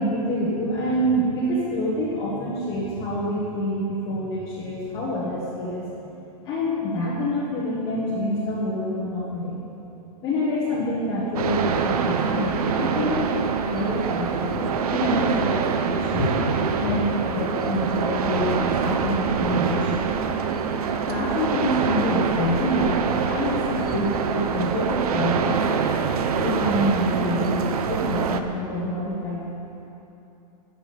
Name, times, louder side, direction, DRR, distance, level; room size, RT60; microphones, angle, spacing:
voice 1, 0.0-5.8 6.4-9.6 10.2-13.4 13.7-14.6 14.9-16.2 16.8-20.1 21.1-23.6 23.9-25.6 26.4-29.4, equal, 20° left, -7 dB, 1.3 m, -26 dB
sound 1, 11.4-28.4, right 6 dB, 70° right, 0.9 m, -25 dB
voice 2, 14.5-14.9 15.4-15.6 15.9-17.0 17.4-17.6 18.2-18.3 23.4-24.1 28.8-28.9, left 1 dB, 10° right, -9 dB, 3.3 m, -32 dB
13.5 x 6.0 x 8.6 m, 2.9 s
supercardioid pair, 175°, 20 cm